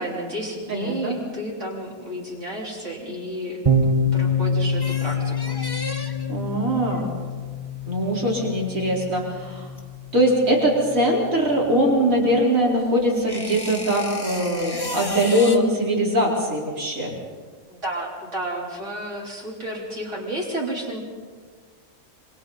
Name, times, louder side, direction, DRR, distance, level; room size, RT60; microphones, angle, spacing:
voice 1, 0.0-5.6 17.7-21.0, right 1 dB, 55° right, -4 dB, 4.2 m, -31 dB
voice 2, 0.7-1.2 6.3-7.1 7.9-9.7 10.1-17.1, equal, 70° right, -3 dB, 4.9 m, -21 dB
sound 1, 3.7-11.3, left 2 dB, 25° right, 1.5 m, -26 dB
sound 2, 4.1-10.7 10.9-15.6, left 1 dB, 15° left, 1.3 m, -35 dB
27.0 x 25.0 x 4.1 m, 1.5 s
omnidirectional pair, 1.5 m